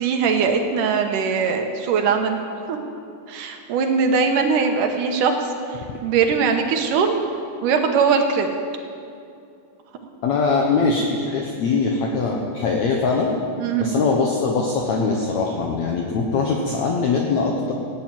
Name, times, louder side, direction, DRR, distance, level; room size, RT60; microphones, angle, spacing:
voice 1, 0.0-2.4 2.7-2.8 3.3-5.5 6.0-7.2 7.6-8.5 13.6-14.1, right 5 dB, 75° right, 4 dB, 2.5 m, -20 dB
voice 2, 10.2-13.3 13.8-17.7, left 4 dB, 65° left, 0 dB, 2.1 m, -22 dB
15.5 x 9.2 x 9.1 m, 2.5 s
omnidirectional pair, 4.0 m